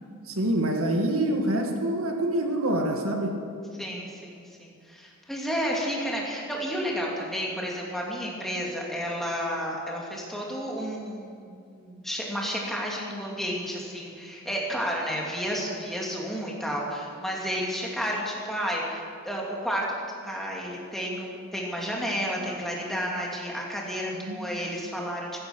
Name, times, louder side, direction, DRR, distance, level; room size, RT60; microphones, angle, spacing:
voice 1, 0.3-3.4 24.1-24.5, right 1 dB, 90° right, 2 dB, 2.0 m, -26 dB
voice 2, 3.8-25.4, equal, ahead, -3 dB, 2.9 m, -31 dB
15.5 x 14.0 x 6.1 m, 2.4 s
head